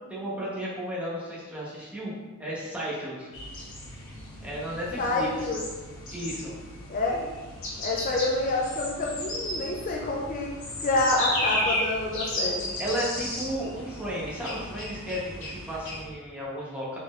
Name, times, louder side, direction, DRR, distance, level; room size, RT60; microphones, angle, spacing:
voice 1, 0.1-2.1 2.4-3.3 4.4-5.3 6.1-6.5 12.8-17.0, equal, 5° right, -7 dB, 1.0 m, -33 dB
sound 1, 3.3-16.0, left 1 dB, 60° left, 1.1 m, -34 dB
voice 2, 5.0-5.6 6.9-7.3 7.8-10.5 10.8-12.6, left 2 dB, 35° left, -2 dB, 0.4 m, -27 dB
4.2 x 4.1 x 2.5 m, 1.3 s
head